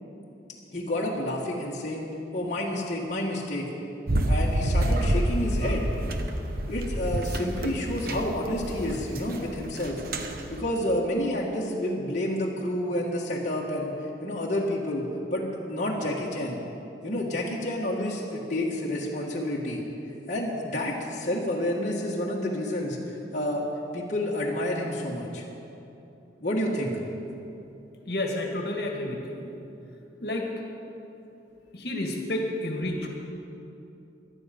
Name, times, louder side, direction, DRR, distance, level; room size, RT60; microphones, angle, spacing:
voice 1, 0.7-2.0 2.3-3.7 4.3-5.8 6.7-10.0 10.5-13.9 14.2-16.6 17.0-19.8 20.3-23.7 23.9-25.4 26.4-27.0, left 1 dB, 45° left, -4 dB, 1.6 m, -29 dB
sound 1, 4.1-10.6, right 1 dB, 55° right, 1.0 m, -28 dB
voice 2, 28.1-29.5 30.2-30.5 31.7-33.1, left 1 dB, 60° left, 1 dB, 1.8 m, -30 dB
18.0 x 12.0 x 5.2 m, 2.9 s
head